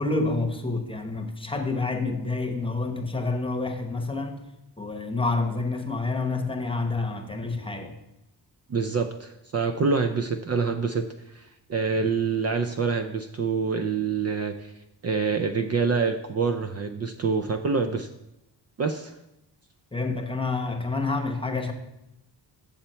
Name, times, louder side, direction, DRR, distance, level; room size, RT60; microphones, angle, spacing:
voice 1, 0.0-4.4 4.8-8.0 19.9-21.7, left 3 dB, 15° left, 4 dB, 1.0 m, -28 dB
voice 2, 8.7-14.7 15.0-18.1 18.8-19.2, right 5 dB, 40° right, 7 dB, 0.5 m, -26 dB
8.0 x 7.0 x 4.4 m, 0.89 s
cardioid pair, 100°, 41 cm